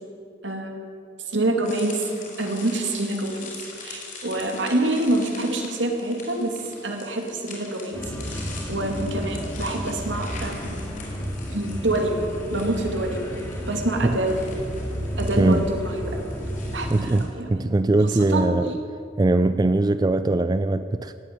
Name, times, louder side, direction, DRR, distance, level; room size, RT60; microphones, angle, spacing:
voice 1, 0.4-0.8 1.3-3.5 3.8-6.6 6.8-10.8 11.5-14.4 15.2-16.2 16.7-17.5 18.0-18.5, right 1 dB, 80° right, 3 dB, 2.4 m, -26 dB
sound 1, 1.6-17.2, left 3 dB, 45° left, 5.0 m, -43 dB
sound 2, 7.9-17.0, equal, 15° left, 2.4 m, -32 dB
voice 2, 15.4-15.7 16.9-18.7 19.2-21.1, right 2 dB, 20° right, 12 dB, 0.4 m, -21 dB
17.5 x 8.9 x 9.4 m, 2.5 s
head